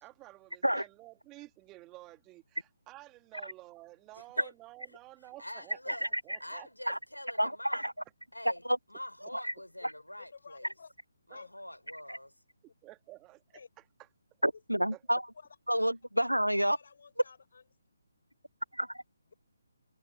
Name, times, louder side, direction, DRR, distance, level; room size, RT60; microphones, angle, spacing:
voice 1, 0.0-6.7 12.8-13.8 14.9-15.0, right 19 dB, 15° right, 2.1 m, -52 dB
voice 2, 4.1-4.5 5.2-6.1 6.4-7.9 8.3-8.6 8.9-10.7 11.3-12.3, left 1 dB, 85° left, 4.7 m, -45 dB
voice 3, 7.4-7.9 8.7-8.8 9.4-9.5 12.1-12.2 14.4-15.2 15.7-16.8 18.7-18.9, equal, 90° right, 0.4 m, -29 dB
voice 4, 10.2-10.9 11.3-11.5 13.5-13.7 14.5-14.6 15.3-15.6 16.6-17.7, left 5 dB, 50° left, 6.6 m, -53 dB
figure-of-eight pair, 145°, 0 cm